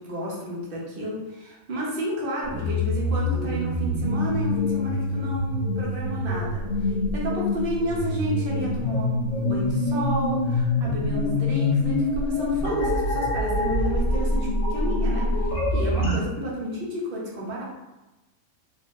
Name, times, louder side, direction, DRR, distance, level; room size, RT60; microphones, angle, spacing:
voice 1, 0.0-17.7, equal, 45° right, -4 dB, 0.9 m, -31 dB
sound 1, 2.4-16.2, left 1 dB, 60° left, 1.0 m, -25 dB
4.0 x 2.7 x 2.6 m, 1.1 s
omnidirectional pair, 1.5 m